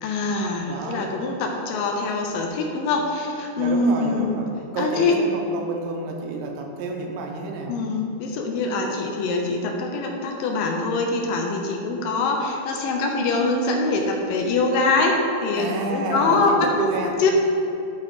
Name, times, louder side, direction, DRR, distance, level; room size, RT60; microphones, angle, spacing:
voice 1, 0.0-4.4 4.8-5.2 7.7-16.7 17.2-17.3, left 3 dB, 75° left, 1 dB, 2.1 m, -24 dB
voice 2, 0.7-1.1 3.6-7.8 15.6-17.2, right 3 dB, 80° right, 2 dB, 2.7 m, -29 dB
11.5 x 4.1 x 4.9 m, 2.8 s
omnidirectional pair, 4.7 m